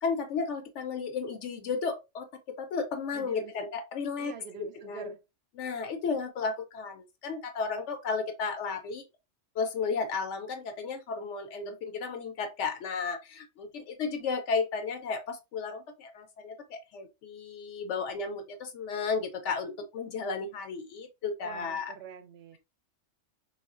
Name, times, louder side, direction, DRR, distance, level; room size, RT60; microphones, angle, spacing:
voice 1, 0.0-4.3 4.6-5.1 5.6-9.1 9.6-21.9, left 5 dB, 80° left, 0.9 m, -33 dB
voice 2, 3.1-3.5 4.2-5.2 21.4-22.6, right 7 dB, 65° right, 0.8 m, -45 dB
3.4 x 2.4 x 2.3 m
omnidirectional pair, 1.2 m